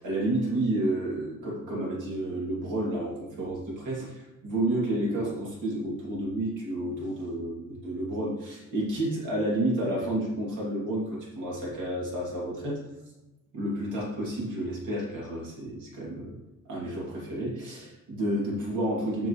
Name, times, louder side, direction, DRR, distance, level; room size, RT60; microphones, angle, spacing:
voice 1, 0.0-12.8 13.5-16.4 16.6-19.3, right 1 dB, 85° right, -4 dB, 2.7 m, -30 dB
7.7 x 7.0 x 3.2 m, 1.0 s
cardioid pair, 90°, 30 cm